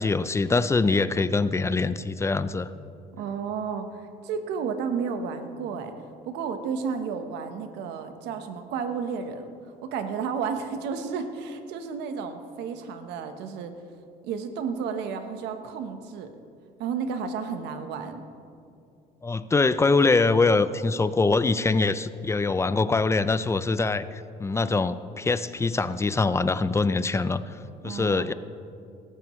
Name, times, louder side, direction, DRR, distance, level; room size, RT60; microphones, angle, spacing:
voice 1, 0.0-2.7 19.2-27.6 27.8-28.3, left 3 dB, 15° left, 14 dB, 0.4 m, -23 dB
voice 2, 3.2-5.9 6.3-9.5 9.8-13.7 14.2-16.3 16.8-18.2 27.8-28.3, right 6 dB, 90° right, 7 dB, 1.1 m, -32 dB
18.0 x 14.5 x 3.1 m, 2.5 s
cardioid pair, 110°, 17 cm